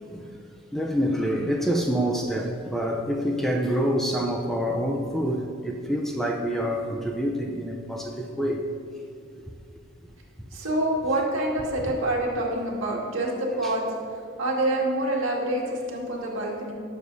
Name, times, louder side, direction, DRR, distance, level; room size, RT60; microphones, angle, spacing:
voice 1, 0.7-8.6 13.6-13.7, equal, ahead, 0 dB, 0.5 m, -27 dB
voice 2, 10.5-13.8 14.4-16.7, right 1 dB, 70° right, -2 dB, 1.9 m, -26 dB
18.0 x 6.8 x 2.7 m, 2.3 s
head